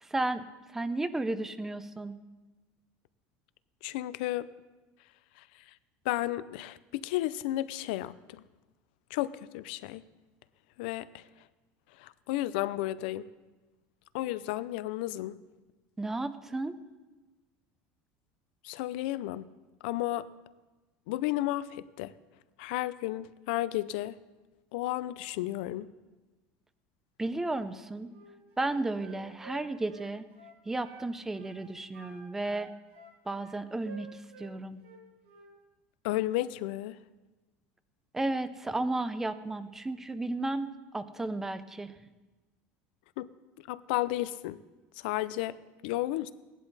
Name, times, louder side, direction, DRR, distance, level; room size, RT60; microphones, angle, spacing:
voice 1, 0.0-0.4 0.7-2.1 16.0-16.7 27.2-28.1 28.6-30.2 30.7-32.7 33.3-34.8 38.1-41.9, right 2 dB, 5° right, 12 dB, 0.5 m, -33 dB
voice 2, 3.8-4.4 6.1-8.1 9.1-10.0 10.8-11.1 12.0-13.3 14.1-15.4 18.6-19.5 19.8-20.3 21.1-22.1 22.6-24.2 24.7-25.9 36.0-37.0 43.2-43.3 43.7-44.6 45.0-45.6 45.8-46.3, left 15 dB, 80° left, 16 dB, 0.5 m, -32 dB
Wind instrument woodwind instrument, 28.1-31.1 31.3-31.6 31.9-34.5 34.8-35.5, right 3 dB, 80° right, 3.9 m, -51 dB
17.5 x 11.0 x 4.1 m, 1.2 s
cardioid pair, 170°, 5 cm